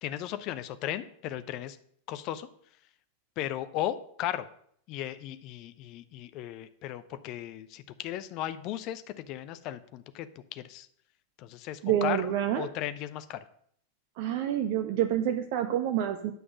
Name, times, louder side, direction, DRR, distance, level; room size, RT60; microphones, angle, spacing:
voice 1, 0.0-1.8 2.1-2.5 3.4-4.5 4.9-10.9 11.4-12.2 12.6-13.4, left 12 dB, 40° left, 13 dB, 0.7 m, -36 dB
voice 2, 11.8-12.7 14.2-16.3, right 10 dB, 45° right, 6 dB, 0.7 m, -28 dB
9.4 x 6.1 x 6.1 m, 0.66 s
figure-of-eight pair, 90°, 0 cm